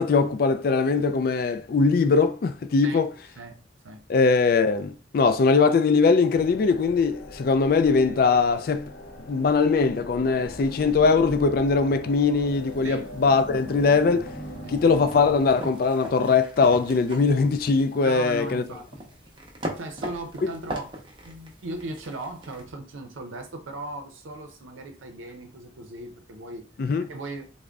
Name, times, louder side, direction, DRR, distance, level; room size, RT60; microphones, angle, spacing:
voice 1, 0.0-3.1 4.1-8.9 9.3-14.3 14.7-18.6 20.4-20.5 26.8-27.0, left 4 dB, 50° left, 0.3 m, -21 dB
sound 1, 6.3-15.6, equal, 75° left, 0.8 m, -40 dB
sound 2, 12.5-22.6, right 1 dB, 25° right, 0.6 m, -41 dB
voice 2, 18.0-19.1 19.8-20.9 21.2-26.7 27.1-27.5, right 2 dB, 85° right, 0.6 m, -37 dB
3.7 x 2.1 x 3.4 m
head